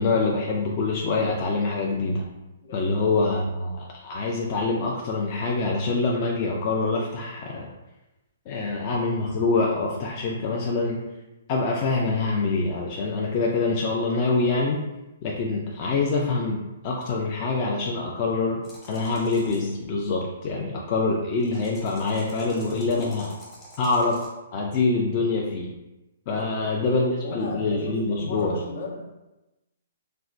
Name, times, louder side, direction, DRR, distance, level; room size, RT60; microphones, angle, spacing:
voice 1, 0.0-2.2 2.7-7.7 8.5-11.0 11.5-14.8 15.2-18.6 18.9-23.3 23.8-24.2 24.5-25.7 26.3-28.5, left 3 dB, 35° left, -2 dB, 0.4 m, -25 dB
voice 2, 2.6-3.0 26.3-26.7 27.2-29.2, left 2 dB, 65° left, 0 dB, 0.7 m, -36 dB
sound 1, 18.6-19.7 21.4-24.3, equal, 15° left, 0.9 m, -47 dB
4.2 x 2.1 x 2.5 m, 1.0 s
hypercardioid pair, 155°, 0 cm